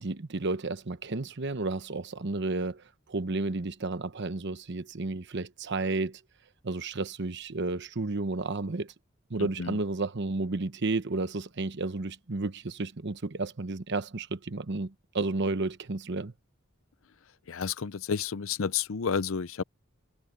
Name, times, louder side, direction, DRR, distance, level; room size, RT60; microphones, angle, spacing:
voice 1, 0.0-2.8 3.1-6.2 6.6-8.9 9.3-16.3, right 3 dB, 55° right, 1.0 m, -32 dB
voice 2, 9.4-9.8 17.5-19.6, left 6 dB, 70° left, 0.6 m, -31 dB
head